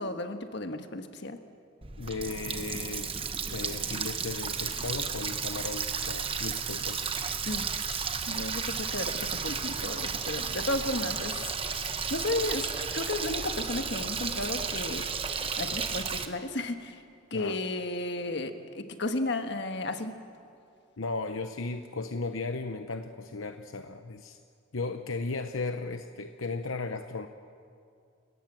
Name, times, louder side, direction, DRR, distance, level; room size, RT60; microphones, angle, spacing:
voice 1, 0.0-1.4 7.5-7.6 8.3-11.4 11.7-15.0 15.4-17.0 17.3-20.2, left 2 dB, 55° left, 7 dB, 1.5 m, -33 dB
Water tap faucet, 1.8-16.3, right 6 dB, 25° right, 1.1 m, -33 dB
voice 2, 2.0-3.1 3.5-7.1 17.3-17.6 21.0-24.4 24.7-27.3, left 3 dB, 75° left, 7 dB, 0.9 m, -36 dB
30.0 x 18.0 x 7.5 m, 2.4 s
head